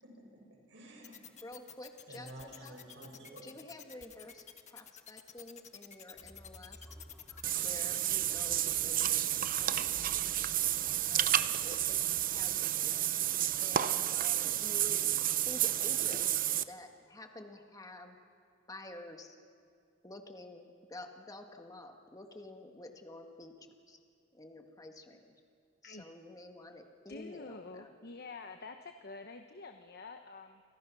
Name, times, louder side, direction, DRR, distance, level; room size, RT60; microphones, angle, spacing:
voice 1, 0.0-1.2 2.1-3.5, right 1 dB, 70° right, 0 dB, 7.2 m, -51 dB
sound 1, 1.0-8.0, left 9 dB, 40° left, 1.4 m, -50 dB
voice 2, 1.4-2.8 3.4-6.9 7.6-9.2 9.5-10.0 11.1-13.0 13.6-16.3 16.7-18.2 18.7-19.4 20.0-23.5 23.9-24.0 24.3-25.4 25.8-27.9, left 1 dB, 20° left, 4 dB, 1.8 m, -50 dB
sound 2, 6.1-12.9, equal, 5° right, 3.2 m, -56 dB
Water / Bathtub (filling or washing), 7.4-16.6, right 11 dB, 45° right, 0.7 m, -31 dB
voice 3, 27.1-30.6, left 3 dB, 55° left, 6 dB, 1.1 m, -47 dB
30.0 x 26.0 x 6.2 m, 2.2 s
head